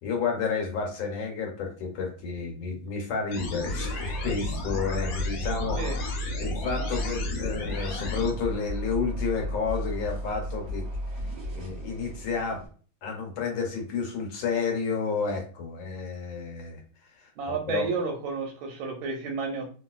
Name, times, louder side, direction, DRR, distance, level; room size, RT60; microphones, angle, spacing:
voice 1, 0.0-5.8 6.4-10.8 11.5-12.6 13.0-16.8 17.2-17.9, left 5 dB, 70° left, 2 dB, 1.4 m, -31 dB
sound 1, 3.3-8.3, left 2 dB, 90° left, 0.7 m, -35 dB
sound 2, 3.7-12.7, equal, 45° right, 0.9 m, -33 dB
voice 2, 17.4-19.7, right 4 dB, 80° right, 1 dB, 1.3 m, -31 dB
3.0 x 2.6 x 2.3 m, 0.41 s
omnidirectional pair, 2.3 m